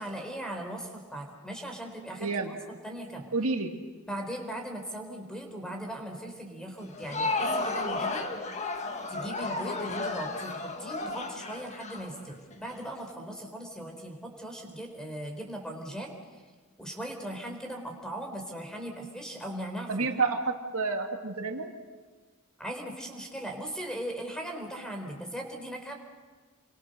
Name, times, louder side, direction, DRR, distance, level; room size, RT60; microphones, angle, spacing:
voice 1, 0.0-2.6 2.8-3.3 4.1-8.3 9.1-16.2 16.8-20.1 22.6-25.9, right 1 dB, 5° left, 3 dB, 4.2 m, -39 dB
voice 2, 2.2-2.5 3.3-3.7 19.9-21.7, right 4 dB, 70° right, 3 dB, 2.2 m, -29 dB
Crowd, 6.8-12.7, left 3 dB, 30° left, 1.8 m, -33 dB
29.0 x 24.5 x 6.7 m, 1.4 s
head